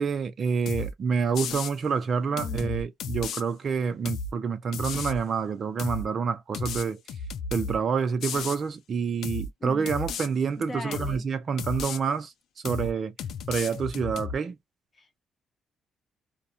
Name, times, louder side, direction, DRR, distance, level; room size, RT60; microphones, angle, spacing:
voice 1, 0.0-7.0 7.5-12.3 12.6-13.1 13.5-14.6, right 6 dB, 50° right, 0.6 m, -28 dB
sound 1, 0.7-0.9 1.3-1.7 2.4-3.4 4.1-4.3 4.7-5.2 5.8-6.1 6.5-7.8 8.2-8.6 9.2-9.5 9.9-10.3 10.9-11.2 11.6-12.0 12.6-12.9 13.2-14.4, left 5 dB, 75° left, 0.4 m, -33 dB
voice 2, 2.3-2.7 9.6-9.9 10.6-11.2 15.0-15.2, left 3 dB, 30° left, 1.0 m, -40 dB
2.3 x 2.2 x 2.7 m
cardioid pair, 90°, 0 cm